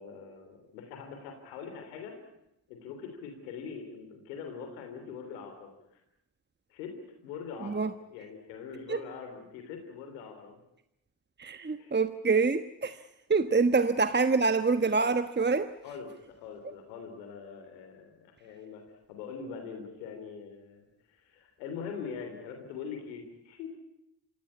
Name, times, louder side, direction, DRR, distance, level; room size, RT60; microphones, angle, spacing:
voice 1, 0.0-2.2 2.7-6.0 6.7-7.0 7.2-10.6 11.8-11.9 15.8-23.7, left 6 dB, 90° left, 5 dB, 3.4 m, -43 dB
voice 2, 11.4-13.0 13.3-15.7, right 4 dB, 20° right, 11 dB, 1.3 m, -26 dB
26.5 x 16.5 x 9.8 m, 0.86 s
hypercardioid pair, 45°, 50 cm